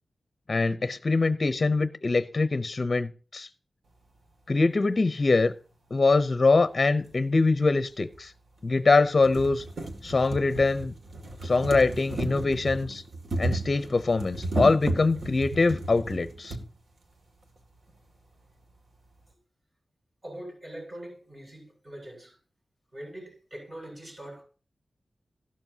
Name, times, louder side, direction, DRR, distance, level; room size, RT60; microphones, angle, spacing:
voice 1, 0.5-3.5 4.5-5.5 5.9-8.3 8.6-9.6 10.0-10.9 11.4-13.0 13.4-16.5, left 3 dB, 45° left, 0.6 m, -23 dB
sound 1, 7.1-7.2 8.1-8.2 8.7-8.8 9.1-16.6 17.6-17.7 17.9-18.0, right 2 dB, 75° right, 2.2 m, -34 dB
voice 2, 20.2-22.3 22.9-24.4, right 1 dB, 35° right, 7.4 m, -42 dB
15.5 x 12.0 x 2.8 m
wide cardioid pair, 95°, 0 cm